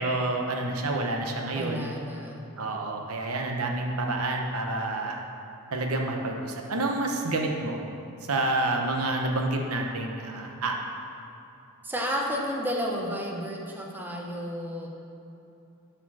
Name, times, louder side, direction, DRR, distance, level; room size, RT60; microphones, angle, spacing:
voice 1, 0.0-1.9 2.6-5.2 5.7-7.8 8.3-10.8, right 2 dB, 70° right, 1 dB, 0.9 m, -28 dB
voice 2, 1.5-2.5 11.8-14.9, equal, 10° right, -1 dB, 0.9 m, -32 dB
11.5 x 4.5 x 6.1 m, 2.9 s
head